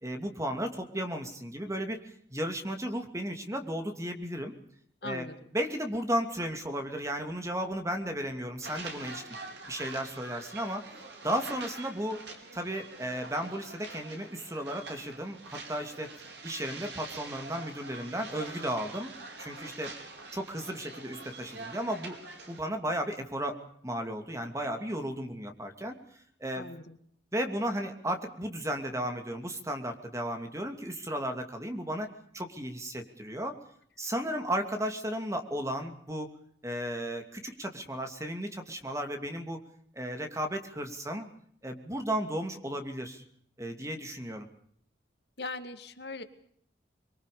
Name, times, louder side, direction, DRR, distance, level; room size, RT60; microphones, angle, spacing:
voice 1, 0.0-4.5 5.0-5.3 5.5-9.2 9.7-10.8 11.2-12.2 12.5-16.1 16.4-19.1 19.4-19.9 20.3-22.2 22.5-26.0 26.4-26.7 27.3-33.6 34.0-36.3 36.6-39.6 39.9-41.3 41.6-43.2 43.6-44.5, equal, 15° right, 5 dB, 2.8 m, -34 dB
voice 2, 5.0-5.4 26.5-27.0 45.4-46.2, left 3 dB, 65° left, 9 dB, 2.0 m, -40 dB
sound 1, 8.6-22.6, right 3 dB, 65° right, 4.9 m, -45 dB
24.5 x 23.5 x 6.9 m, 0.64 s
head